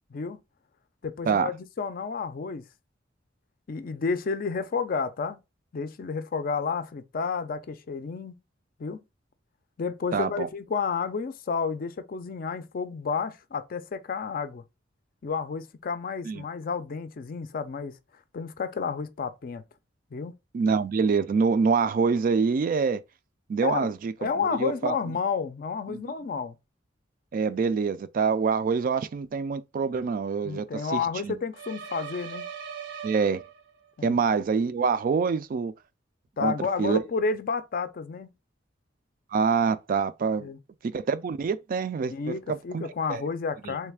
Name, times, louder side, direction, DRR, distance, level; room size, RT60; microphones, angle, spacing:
voice 1, 1.0-2.6 3.7-5.4 5.7-8.4 8.8-9.0 9.8-14.6 15.2-18.0 18.3-19.6 20.1-20.3 23.6-23.9 24.2-26.6 30.4-32.5 34.0-34.1 36.4-38.3 40.4-40.6 42.1-43.9, left 5 dB, 50° left, 0.4 m, -31 dB
voice 2, 10.1-10.5 16.3-16.4 20.5-23.0 23.5-24.9 25.9-26.0 27.3-31.4 33.0-33.4 34.0-35.7 36.4-36.5 36.8-37.0 39.3-40.5 40.8-42.1 42.5-43.2 43.7-43.8, right 5 dB, 45° right, 0.3 m, -26 dB
sound 1, 31.5-33.9, right 7 dB, 85° right, 0.8 m, -40 dB
3.2 x 3.1 x 3.4 m
head